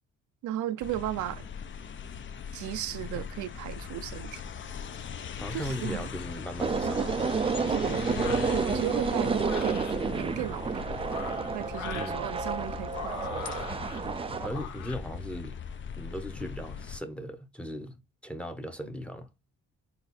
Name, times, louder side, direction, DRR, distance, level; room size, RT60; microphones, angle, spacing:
voice 1, 0.4-1.5 2.5-4.4 5.5-6.1 7.7-9.9 10.1-10.9 11.5-13.3, right 13 dB, 75° right, 0.5 m, -35 dB
sound 1, 0.8-17.0, left 7 dB, 40° left, 0.6 m, -40 dB
voice 2, 5.4-7.2 11.9-12.3 14.4-15.6 15.9-19.3, equal, 5° left, 0.8 m, -38 dB
sound 2, 6.6-14.5, right 5 dB, 20° right, 0.3 m, -30 dB
sound 3, 8.1-8.6 9.4-9.9 10.9-12.2 12.9-14.0 14.5-15.0, left 6 dB, 75° left, 1.1 m, -41 dB
4.1 x 2.5 x 4.1 m
cardioid pair, 90°, 30 cm